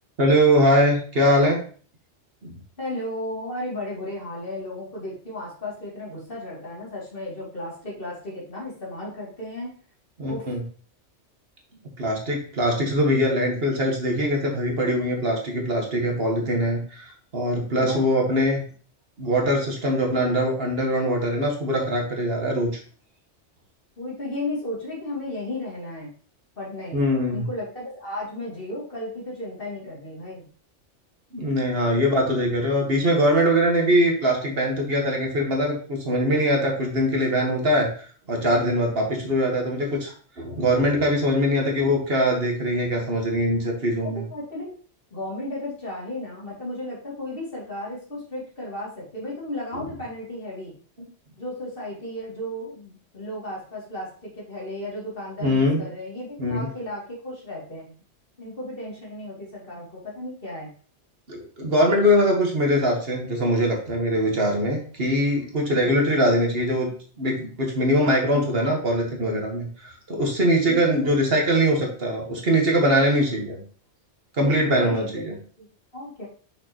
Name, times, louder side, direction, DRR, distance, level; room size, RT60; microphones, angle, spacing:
voice 1, 0.2-1.6 2.4-2.5 10.2-10.6 12.0-18.6 19.2-22.7 26.9-27.5 31.3-37.9 38.3-44.2 55.4-55.8 56.4-56.7 61.3-66.9 67.2-73.6 74.4-75.3, equal, 55° right, 0 dB, 1.7 m, -22 dB
voice 2, 2.8-9.7 10.3-10.5 17.8-18.0 24.0-26.1 26.6-30.4 44.0-44.7 45.1-50.7 51.4-57.9 58.4-60.7 68.3-68.7 70.6-71.2 74.4-75.1 75.6-75.7 75.9-76.3, left 1 dB, 50° left, -5 dB, 2.8 m, -34 dB
6.4 x 5.9 x 2.9 m, 0.43 s
omnidirectional pair, 1.2 m